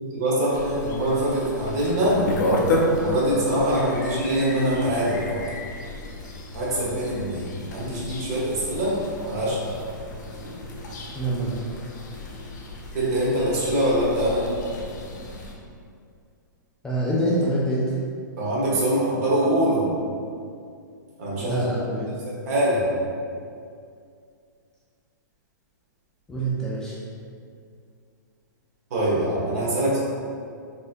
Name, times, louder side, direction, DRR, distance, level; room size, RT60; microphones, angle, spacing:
voice 1, 0.0-2.2 3.0-5.4 6.5-8.9 9.2-9.7 12.9-14.5 18.4-19.9 21.2-21.6 22.5-22.8 28.9-30.0, right 1 dB, 50° right, -6 dB, 1.2 m, -23 dB
sound 1, 0.5-15.5, left 1 dB, 65° left, 0.6 m, -32 dB
voice 2, 11.1-11.6 16.8-17.8 21.4-22.1 26.3-26.9, right 1 dB, 5° left, -8 dB, 0.4 m, -25 dB
4.3 x 2.7 x 2.5 m, 2.3 s
hypercardioid pair, 150°, 11 cm